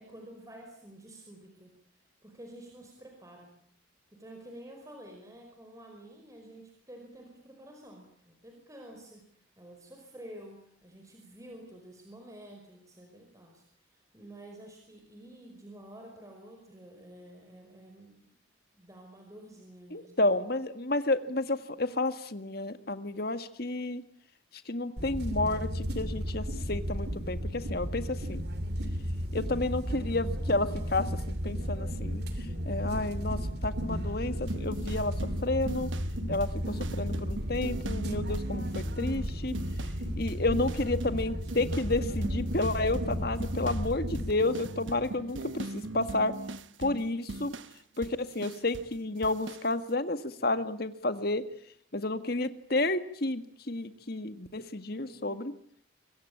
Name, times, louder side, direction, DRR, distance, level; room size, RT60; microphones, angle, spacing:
voice 1, 0.0-3.5 4.1-18.4 18.7-20.3 45.0-45.5 54.9-55.3, right 1 dB, 15° right, 2 dB, 5.2 m, -50 dB
voice 2, 19.9-24.0 24.7-28.5 29.3-35.1 35.4-35.9 36.3-39.6 40.2-46.3 46.8-47.5 48.0-51.5 51.9-55.5, left 2 dB, 50° left, 10 dB, 1.8 m, -31 dB
sound 1, 25.0-44.3, equal, 55° right, 2.9 m, -34 dB
sound 2, 34.5-40.0 40.3-41.2 41.5-48.9 49.2-49.7, right 2 dB, 75° right, 1.0 m, -41 dB
25.5 x 22.5 x 8.7 m, 0.63 s
head